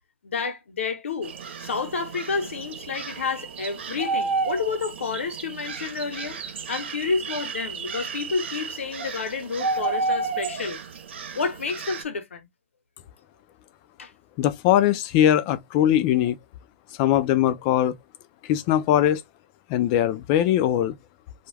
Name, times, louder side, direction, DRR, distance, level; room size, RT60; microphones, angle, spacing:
voice 1, 0.2-1.3 1.6-6.4 6.7-10.8 11.3-12.5 14.0-14.1, left 5 dB, 80° left, 0.9 m, -30 dB
sound 1, 1.2-12.0, right 4 dB, 70° right, 0.9 m, -32 dB
voice 2, 14.4-16.4 17.0-17.9 18.5-19.2 19.7-21.0, left 11 dB, 35° left, 0.4 m, -21 dB
2.3 x 2.2 x 3.2 m
hypercardioid pair, 140°, 7 cm